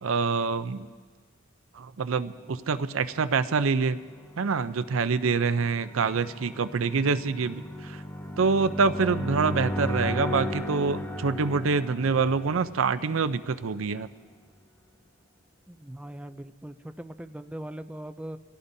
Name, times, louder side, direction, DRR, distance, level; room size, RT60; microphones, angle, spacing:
voice 1, 0.0-0.9 1.7-4.0 4.4-8.0 8.4-14.1, right 4 dB, 85° right, 12 dB, 0.5 m, -26 dB
sound 1, 3.0-13.8, left 1 dB, 10° left, 1.0 m, -36 dB
voice 2, 15.7-18.4, right 1 dB, 5° right, 10 dB, 0.4 m, -40 dB
24.5 x 16.5 x 2.7 m, 1.5 s
head